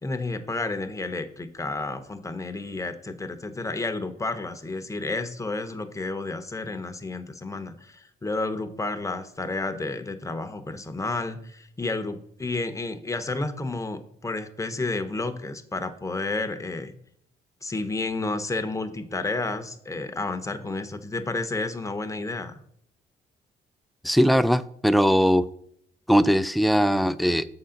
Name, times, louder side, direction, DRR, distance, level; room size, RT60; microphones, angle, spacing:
voice 1, 0.0-16.9 17.6-22.6, left 2 dB, 15° left, 8 dB, 0.8 m, -31 dB
voice 2, 24.0-25.5 26.1-27.5, equal, ahead, 14 dB, 0.4 m, -20 dB
7.1 x 3.8 x 5.7 m, 0.69 s
cardioid pair, 90°, 20 cm